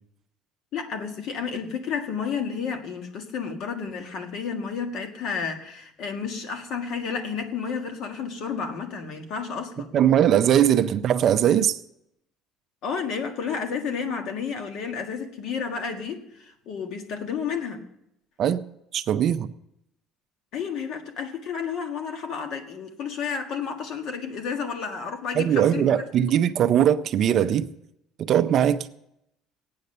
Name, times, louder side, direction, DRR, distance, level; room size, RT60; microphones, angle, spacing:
voice 1, 0.7-9.9 12.8-17.9 20.5-26.0, left 6 dB, 50° left, 1.7 m, -31 dB
voice 2, 9.9-11.8 18.4-18.6 18.9-19.5 25.4-27.7 28.2-28.9, right 10 dB, 40° right, 0.5 m, -20 dB
16.5 x 9.5 x 6.7 m
cardioid pair, 180°, 0 cm